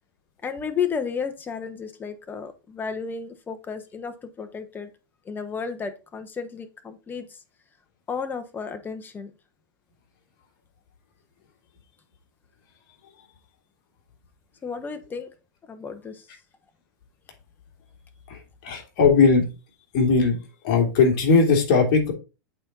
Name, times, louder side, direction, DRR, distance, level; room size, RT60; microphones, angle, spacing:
voice 1, 0.4-4.9 5.2-7.4 8.1-9.3 14.6-15.3 15.7-16.3, left 6 dB, 15° left, 1.1 m, -32 dB
voice 2, 18.3-19.5 19.9-20.4 20.6-22.1, left 4 dB, 50° left, 3.1 m, -19 dB
8.3 x 4.4 x 4.0 m
hypercardioid pair, 130°, 11 cm